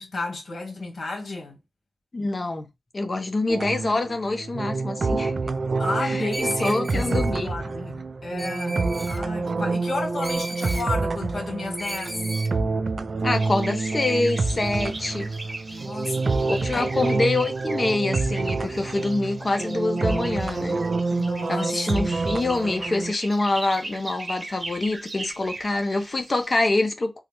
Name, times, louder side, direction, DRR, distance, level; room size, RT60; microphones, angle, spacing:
voice 1, 0.0-1.6 5.8-12.2 15.7-16.9 21.1-22.1, left 2 dB, 70° left, 1.4 m, -32 dB
voice 2, 2.1-5.3 6.0-7.6 13.2-15.3 16.5-20.8 21.5-27.2, left 2 dB, 45° left, 0.7 m, -26 dB
sound 1, 3.5-23.1, right 3 dB, 60° right, 0.3 m, -27 dB
Screech, 6.3-7.3 8.4-9.2 10.2-10.9 11.8-12.5, right 1 dB, 15° right, 0.6 m, -36 dB
sound 2, 13.3-26.6, right 2 dB, 35° right, 0.8 m, -39 dB
3.6 x 2.1 x 3.0 m
cardioid pair, 60°, 0 cm